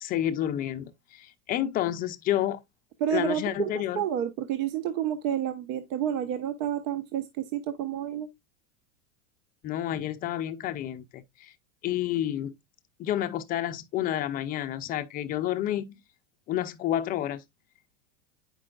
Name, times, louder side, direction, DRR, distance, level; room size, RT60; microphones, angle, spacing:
voice 1, 0.0-2.6 3.1-4.0 9.6-11.5 11.8-12.5 13.0-15.9 16.5-17.4, left 12 dB, 20° left, 0.4 m, -30 dB
voice 2, 3.0-8.3, right 10 dB, 65° right, 0.9 m, -30 dB
8.4 x 5.2 x 2.3 m
supercardioid pair, 130°, 42 cm